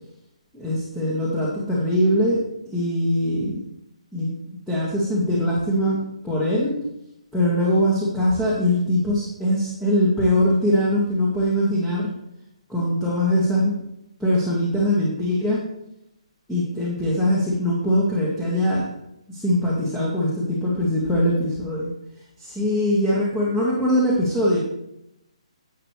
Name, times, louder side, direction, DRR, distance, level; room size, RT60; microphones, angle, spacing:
voice 1, 0.5-2.4 2.7-3.6 4.1-4.3 4.7-6.8 7.3-12.1 12.7-13.7 14.2-15.6 16.5-18.9 19.3-21.9 22.4-24.6, left 1 dB, 5° left, -6 dB, 1.7 m, -22 dB
10.5 x 8.1 x 3.3 m, 0.83 s
figure-of-eight pair, 135°, 4 cm